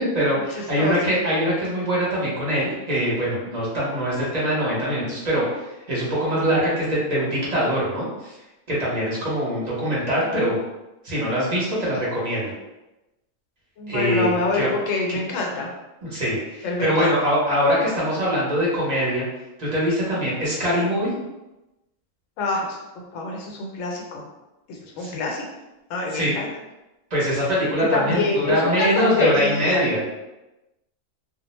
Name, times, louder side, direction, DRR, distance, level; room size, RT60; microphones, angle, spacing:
voice 1, 0.0-5.4 5.9-8.3 8.7-10.6 11.0-12.5 13.9-14.7 15.1-15.2 16.0-19.2 19.6-21.1 25.0-25.2 26.1-26.3 27.1-30.0, equal, 35° right, -6 dB, 0.8 m, -23 dB
voice 2, 13.8-15.7 16.6-17.1 22.4-22.7 23.1-24.2 24.7-25.4 25.9-26.5 27.8-29.8, left 3 dB, 85° left, 0 dB, 1.0 m, -25 dB
2.3 x 2.0 x 3.0 m, 1.0 s
omnidirectional pair, 1.3 m